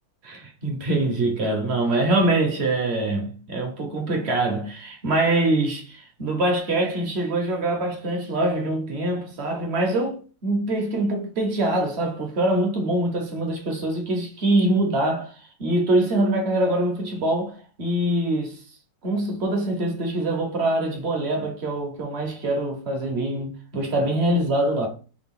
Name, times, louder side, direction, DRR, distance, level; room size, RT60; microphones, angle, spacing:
voice 1, 0.2-15.3 15.6-18.6 19.0-24.9, right 1 dB, 45° right, 0.9 m, -24 dB
5.1 x 2.3 x 3.6 m
omnidirectional pair, 1.9 m